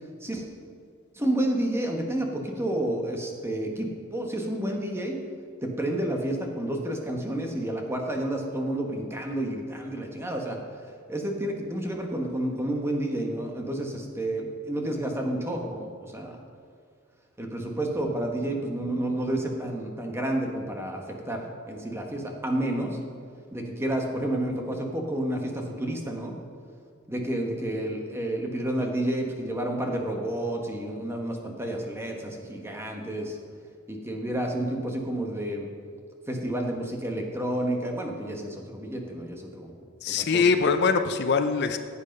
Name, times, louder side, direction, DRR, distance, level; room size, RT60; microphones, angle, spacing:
voice 1, 1.1-5.2 5.6-10.6 11.1-16.4 17.4-23.0 23.5-26.4 27.1-33.4 33.9-35.7 36.3-39.7 40.1-40.4, right 1 dB, 10° right, 2 dB, 1.4 m, -30 dB
voice 2, 40.0-41.8, left 5 dB, 50° left, 8 dB, 0.5 m, -23 dB
15.5 x 8.5 x 5.3 m, 2.2 s
head